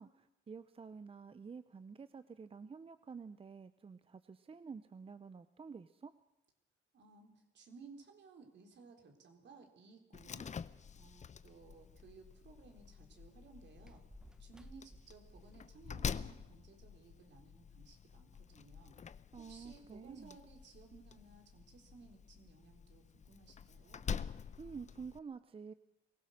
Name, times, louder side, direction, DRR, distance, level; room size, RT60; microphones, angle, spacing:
voice 1, 0.0-6.1 19.3-20.4 24.6-25.7, right 5 dB, 30° right, 13 dB, 0.7 m, -50 dB
voice 2, 6.9-10.5 10.9-14.1 14.4-19.0 19.4-24.0, right 4 dB, 65° right, 4 dB, 4.0 m, -59 dB
Slam, 10.1-25.2, left 6 dB, 35° left, 0.7 m, -47 dB
sound 1, 11.3-16.5, equal, 5° right, 1.1 m, -62 dB
23.5 x 17.0 x 6.6 m, 0.91 s
cardioid pair, 90°, 20 cm